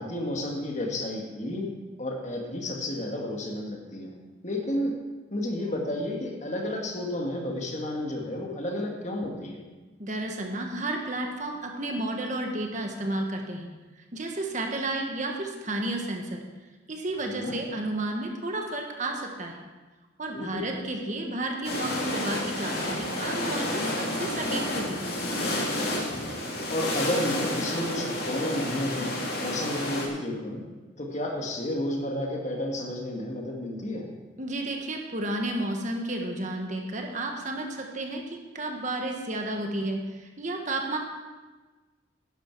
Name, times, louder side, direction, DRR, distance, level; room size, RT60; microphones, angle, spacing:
voice 1, 0.0-4.1 4.4-5.0 5.3-9.6 17.2-17.6 20.3-20.7 26.7-30.7 31.0-34.1, left 1 dB, 35° left, 1 dB, 1.7 m, -31 dB
voice 2, 10.0-13.7 14.1-16.4 16.9-19.6 20.2-25.2 34.4-41.0, right 2 dB, 40° right, 2 dB, 1.4 m, -32 dB
sound 1, 21.6-30.1, left 1 dB, 55° left, 2.4 m, -30 dB
11.5 x 11.0 x 4.6 m, 1.3 s
head